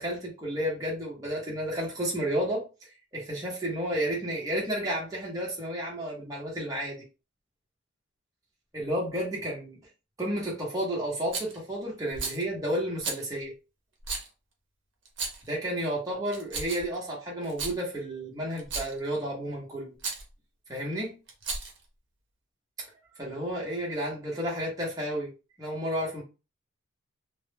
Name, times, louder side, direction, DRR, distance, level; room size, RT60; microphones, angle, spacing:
voice 1, 0.0-7.0 8.7-9.8 10.2-13.5 15.4-19.9 20.7-21.1 23.2-25.3 25.6-26.2, equal, 15° right, 0.7 m, -32 dB
Rattle, 11.3-11.6 12.1-12.4 13.0-13.2 14.0-14.3 15.1-15.5 16.3-17.0 17.4-17.8 18.6-19.0 20.0-20.2 21.3-21.8, right 4 dB, 55° right, 0.6 m, -34 dB
2.0 x 2.0 x 3.1 m
head